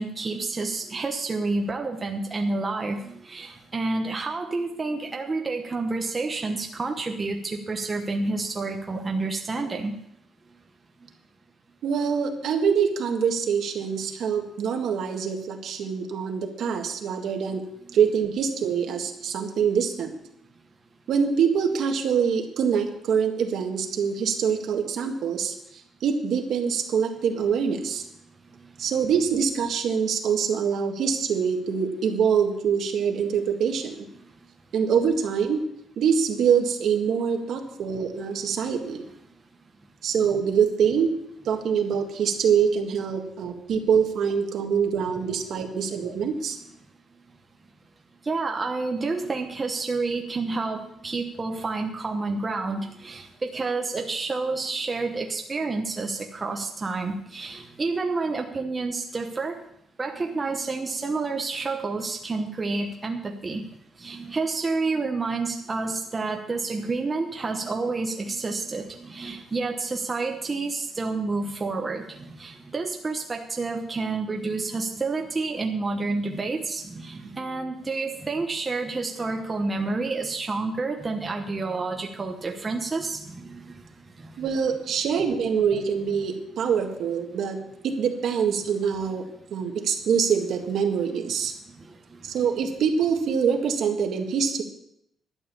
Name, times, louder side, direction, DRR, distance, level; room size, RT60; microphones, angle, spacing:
voice 1, 0.0-9.9 38.6-38.7 48.3-59.6 60.0-63.6 64.0-83.6, right 3 dB, 20° right, 2 dB, 1.1 m, -29 dB
voice 2, 11.8-17.6 17.9-20.1 21.1-28.1 28.8-34.0 34.7-35.6 36.0-39.1 40.0-41.1 41.5-46.6 84.4-89.3 89.5-91.5 92.2-94.6, right 7 dB, 60° right, 4 dB, 1.8 m, -24 dB
12.0 x 9.5 x 6.9 m, 0.74 s
cardioid pair, 170°, 0 cm